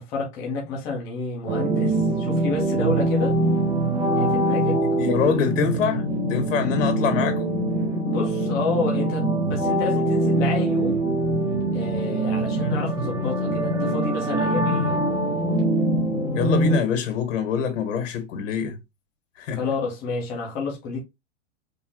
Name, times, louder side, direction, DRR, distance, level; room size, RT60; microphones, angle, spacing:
voice 1, 0.0-3.4 4.1-4.8 5.2-5.3 8.0-11.0 11.7-15.0 19.5-21.0, left 4 dB, 10° left, 0.3 m, -29 dB
sound 1, 1.5-16.8, right 1 dB, 10° right, 0.9 m, -23 dB
voice 2, 5.0-7.6 16.3-18.8 19.4-19.6, left 6 dB, 80° left, 1.9 m, -25 dB
5.2 x 2.4 x 3.2 m
supercardioid pair, 165°, 37 cm